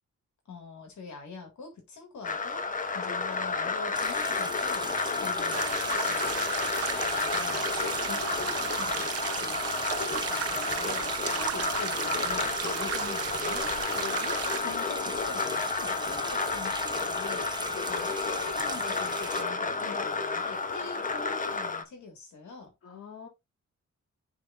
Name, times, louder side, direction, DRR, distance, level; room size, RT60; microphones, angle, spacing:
voice 1, 0.5-2.7 2.9-4.9 5.2-6.7 7.3-9.6 9.9-13.7 14.3-22.7, left 4 dB, 70° left, 1.9 m, -44 dB
sound 1, 2.2-21.8, left 4 dB, 25° left, 0.8 m, -31 dB
sound 2, 3.9-19.4, right 2 dB, 15° right, 0.9 m, -40 dB
sound 3, 5.5-14.6, right 10 dB, 55° right, 0.5 m, -35 dB
voice 2, 11.0-11.8 14.0-14.4 17.7-17.9 21.0-21.1 22.8-23.3, left 6 dB, 50° left, 2.0 m, -45 dB
10.5 x 3.6 x 2.5 m
wide cardioid pair, 135°, 30 cm